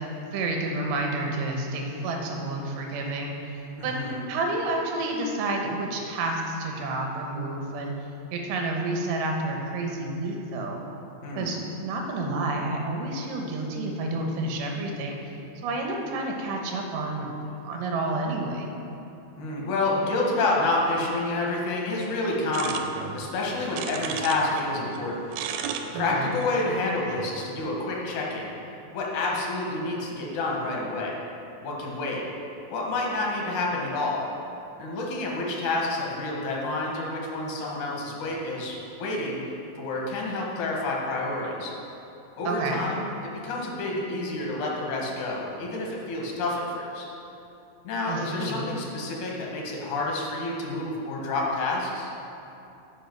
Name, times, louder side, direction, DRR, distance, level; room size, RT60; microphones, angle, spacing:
voice 1, 0.1-3.3 3.8-3.9 4.3-7.9 8.3-10.8 11.4-15.2 15.6-17.3 17.6-18.7 25.9-26.4 42.4-42.8 48.1-48.6, right 2 dB, 70° right, 1 dB, 2.4 m, -29 dB
voice 2, 3.8-4.2 11.2-11.5 19.4-25.3 25.9-28.5 28.9-31.2 31.6-32.2 32.7-34.2 34.8-39.4 39.8-41.7 42.4-47.1 47.8-52.1, left 2 dB, 65° left, -2 dB, 2.4 m, -29 dB
sound 1, 22.5-24.7 24.9-27.5, right 8 dB, 90° right, 2.5 m, -35 dB
11.0 x 5.4 x 4.5 m, 2.8 s
omnidirectional pair, 4.3 m